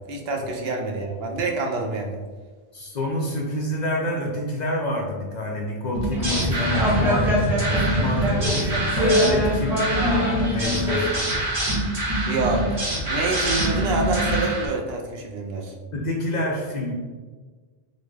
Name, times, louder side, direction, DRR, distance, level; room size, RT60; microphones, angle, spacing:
voice 1, 0.0-2.2 12.3-12.8 13.1-15.7, right 3 dB, 70° right, 1 dB, 0.8 m, -27 dB
voice 2, 2.7-7.4 7.7-9.9 10.5-11.2 15.9-16.9, left 1 dB, 50° left, -1 dB, 0.6 m, -27 dB
sound 1, 5.9-14.7, right 1 dB, 35° right, 0.8 m, -25 dB
sound 2, 6.1-11.0, equal, 5° right, 0.6 m, -24 dB
4.0 x 2.2 x 3.2 m, 1.4 s
omnidirectional pair, 1.1 m